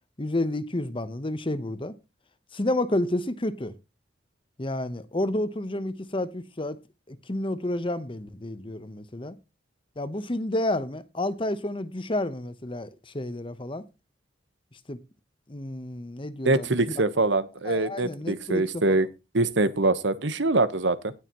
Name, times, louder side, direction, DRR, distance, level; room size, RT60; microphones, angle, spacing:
voice 1, 0.2-1.9 2.5-3.8 4.6-6.8 7.1-9.4 10.0-13.8 14.9-15.0 15.5-17.0 17.6-19.0, left 1 dB, 30° left, 1.0 m, -30 dB
voice 2, 16.4-19.1 19.3-21.1, right 2 dB, 80° right, 1.2 m, -24 dB
18.5 x 6.6 x 3.0 m
head